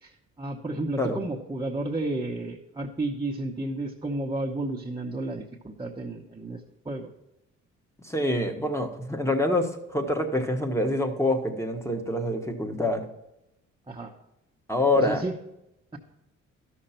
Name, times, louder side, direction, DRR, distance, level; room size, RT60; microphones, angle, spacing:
voice 1, 0.0-6.6 6.8-7.1 13.9-14.1 14.9-15.3, right 2 dB, 15° right, -1 dB, 1.0 m, -32 dB
voice 2, 8.0-13.1 14.7-15.2, left 1 dB, 10° left, 5 dB, 1.4 m, -26 dB
12.5 x 6.5 x 4.4 m, 0.87 s
cardioid pair, 90°, 30 cm